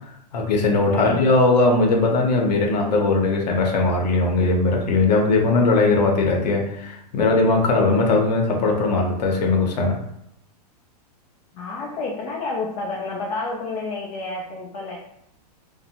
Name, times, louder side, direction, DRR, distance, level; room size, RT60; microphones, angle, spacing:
voice 1, 0.3-10.0, left 3 dB, 85° left, 1 dB, 0.8 m, -19 dB
voice 2, 0.9-1.3 11.5-15.0, left 3 dB, 30° left, -3 dB, 0.4 m, -29 dB
2.6 x 2.0 x 2.8 m, 0.78 s
supercardioid pair, 150°, 21 cm